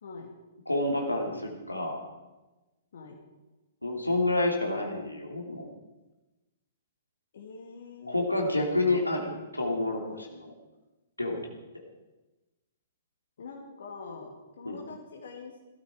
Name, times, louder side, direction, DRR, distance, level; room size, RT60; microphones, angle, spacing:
voice 1, 0.0-0.3 2.9-3.2 7.3-8.2 13.4-15.6, left 4 dB, 55° left, 1 dB, 2.2 m, -44 dB
voice 2, 0.7-2.0 3.8-5.7 8.1-10.5 11.2-11.5 14.6-14.8, left 2 dB, 85° left, 1 dB, 2.8 m, -29 dB
17.0 x 13.5 x 4.9 m, 1.1 s
figure-of-eight pair, 115°, 0 cm